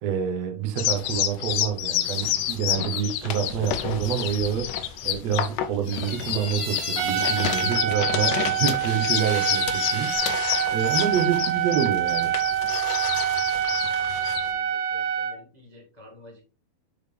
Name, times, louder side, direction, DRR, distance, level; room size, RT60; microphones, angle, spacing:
voice 1, 0.0-12.3, right 8 dB, 65° right, 1.6 m, -28 dB
sound 1, 0.8-14.5, left 11 dB, 80° left, 2.0 m, -29 dB
sound 2, 2.9-5.2 5.8-7.8 8.2-10.2, right 1 dB, 35° right, 3.5 m, -39 dB
Trumpet, 7.0-15.4, right 10 dB, 85° right, 2.6 m, -26 dB
voice 2, 13.9-16.5, left 2 dB, 50° left, 0.4 m, -51 dB
7.3 x 6.6 x 3.4 m
omnidirectional pair, 4.5 m